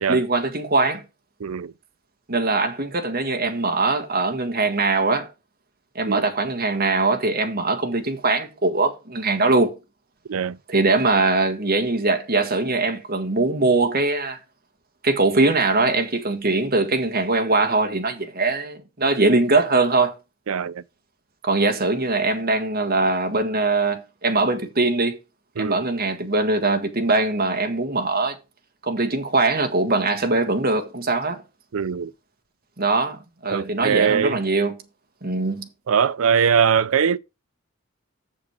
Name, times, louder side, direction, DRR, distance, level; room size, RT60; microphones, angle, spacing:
voice 1, 0.1-1.0 2.3-5.3 5.9-9.8 10.7-14.4 15.0-20.1 21.4-25.2 25.6-28.4 28.8-31.4 32.8-34.8 35.2-35.7, right 3 dB, 45° right, 1.5 m, -21 dB
voice 2, 1.4-1.7 6.1-6.3 10.3-10.6 20.5-20.8 25.6-25.8 31.7-32.1 33.5-34.4 35.9-37.2, right 7 dB, 80° right, 0.5 m, -21 dB
7.3 x 7.0 x 4.8 m
head